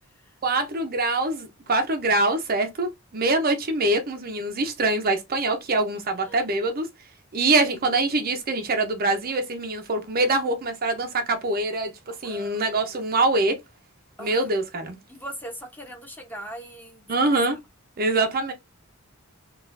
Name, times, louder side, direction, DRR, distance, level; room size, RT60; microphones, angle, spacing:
voice 1, 0.4-6.9 7.3-13.6 14.2-15.0 17.1-17.6 18.0-18.5, right 2 dB, 45° right, 0.6 m, -24 dB
voice 2, 6.2-6.6 7.6-7.8 12.2-12.9 14.2-14.5 15.1-17.3, right 1 dB, 10° left, 1.0 m, -41 dB
4.0 x 2.4 x 2.5 m
head